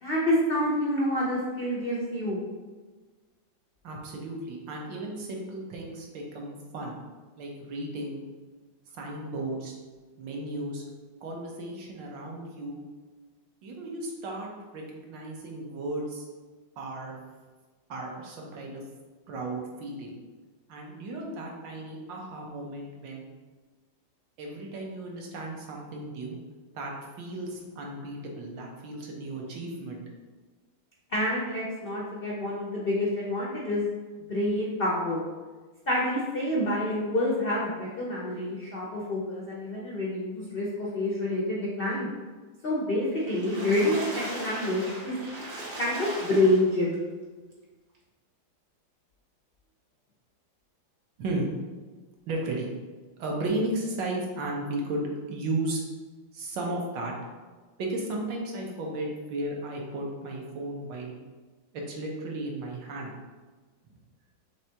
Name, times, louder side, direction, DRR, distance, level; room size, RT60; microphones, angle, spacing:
voice 1, 0.0-2.4 31.1-33.8 34.3-35.2 35.9-42.1 42.6-44.0 44.3-45.2 45.8-47.0, left 1 dB, 85° left, -4 dB, 0.5 m, -27 dB
voice 2, 3.8-7.0 7.4-8.2 8.9-9.7 10.2-10.8 11.2-12.8 13.6-16.2 16.8-17.1 17.9-18.8 19.3-20.2 20.7-23.2 24.4-26.4 26.7-30.0 51.2-51.5 52.3-52.7 53.2-55.8 56.3-57.1 57.8-61.2 61.7-63.1 63.9-64.0, right 2 dB, 75° right, -1 dB, 1.5 m, -34 dB
Water / Splash splatter, 43.1-47.0 47.5-47.6 47.9-48.0, right 1 dB, 55° right, 1.6 m, -38 dB
5.9 x 3.2 x 2.8 m, 1.3 s
omnidirectional pair, 2.1 m